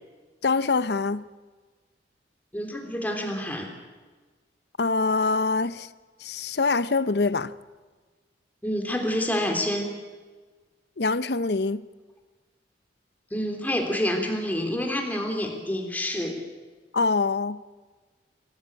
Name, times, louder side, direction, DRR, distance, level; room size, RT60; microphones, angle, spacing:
voice 1, 0.4-1.2 4.8-5.9 6.2-7.5 11.0-11.8 16.9-17.6, left 3 dB, 60° left, 0.7 m, -24 dB
voice 2, 2.5-3.7 8.6-9.9 13.3-16.4, left 1 dB, 10° left, 3.4 m, -28 dB
25.0 x 16.5 x 8.9 m
head